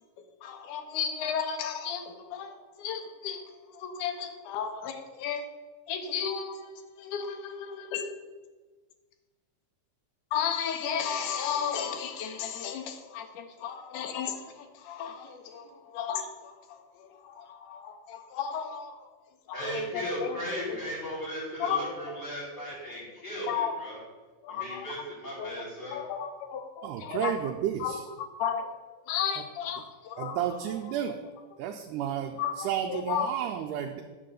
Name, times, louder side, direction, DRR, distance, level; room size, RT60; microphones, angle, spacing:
voice 1, 0.4-5.4 5.9-8.1 10.3-19.1 19.5-20.4 20.7-20.8 21.6-22.1 23.5-23.8 24.4-24.9 25.4-25.5 25.8-27.3 27.8-28.7 29.1-30.9 32.0-33.4, left 8 dB, 85° left, 6 dB, 2.2 m, -34 dB
voice 2, 19.5-24.0 24.5-26.0, equal, 35° left, -8 dB, 3.0 m, -36 dB
voice 3, 26.8-28.0 30.2-31.2 31.6-34.0, right 10 dB, 85° right, 4 dB, 2.1 m, -32 dB
8.3 x 3.9 x 6.6 m, 1.3 s
omnidirectional pair, 3.5 m